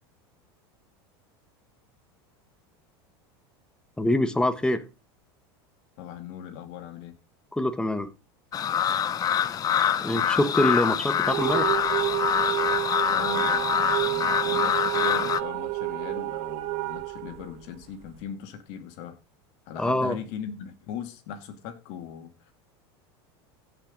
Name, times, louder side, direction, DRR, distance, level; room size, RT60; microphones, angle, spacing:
voice 1, 4.0-4.8 7.6-8.1 10.0-11.7 19.8-20.2, left 1 dB, 5° left, 1.2 m, -24 dB
voice 2, 6.0-7.1 13.0-19.2 19.7-22.5, left 8 dB, 60° left, 2.5 m, -39 dB
sound 1, 8.5-15.4, left 9 dB, 30° left, 0.6 m, -25 dB
sound 2, 11.2-18.2, right 17 dB, 55° right, 1.0 m, -29 dB
16.5 x 6.0 x 3.9 m
supercardioid pair, 120°, 13 cm